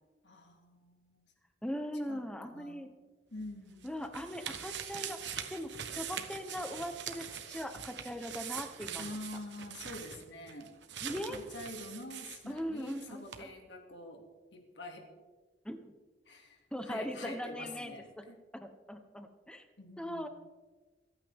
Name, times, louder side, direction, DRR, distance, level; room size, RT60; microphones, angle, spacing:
voice 1, 0.2-1.2 2.1-2.9 3.3-3.9 9.0-10.7 11.3-14.2 14.5-15.0 16.3-18.4 19.8-20.3, left 2 dB, 90° left, 3 dB, 2.5 m, -46 dB
voice 2, 1.6-2.9 3.8-9.2 11.0-11.4 12.5-13.5 15.6-15.9 16.7-18.2 18.5-19.6 20.0-20.3, equal, 5° left, 7 dB, 1.1 m, -40 dB
sound 1, 3.4-13.0 13.3-13.4, right 8 dB, 85° right, 1.2 m, -43 dB
26.5 x 9.2 x 3.7 m, 1.3 s
head